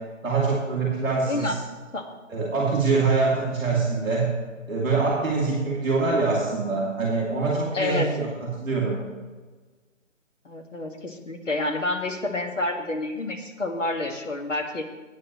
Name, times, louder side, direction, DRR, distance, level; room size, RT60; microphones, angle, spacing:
voice 1, 0.2-1.6 2.3-4.3 4.7-8.3 8.6-9.0, right 4 dB, 5° right, -19 dB, 1.1 m, -24 dB
voice 2, 1.3-1.6 1.9-2.1 7.7-8.1 10.5-14.8, left 2 dB, 65° left, 3 dB, 1.8 m, -28 dB
17.5 x 9.5 x 3.1 m, 1.3 s
hypercardioid pair, 175°, 40 cm